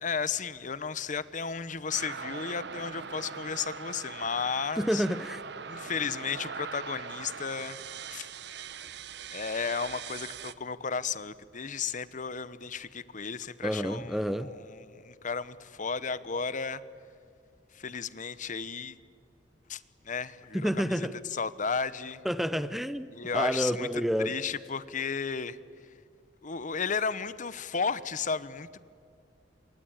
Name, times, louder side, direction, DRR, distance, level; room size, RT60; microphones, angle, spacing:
voice 1, 0.0-5.0 5.7-7.8 8.1-8.3 9.3-16.8 17.7-19.0 19.7-22.2 23.1-23.9 24.2-25.6 26.4-28.8, left 5 dB, 45° left, 0.9 m, -34 dB
sound 1, 1.9-10.5, right 6 dB, 65° right, 1.0 m, -41 dB
voice 2, 4.8-5.4 13.6-14.5 20.5-21.1 22.2-23.1 23.3-24.4, equal, ahead, 0.6 m, -29 dB
27.0 x 23.5 x 8.8 m
head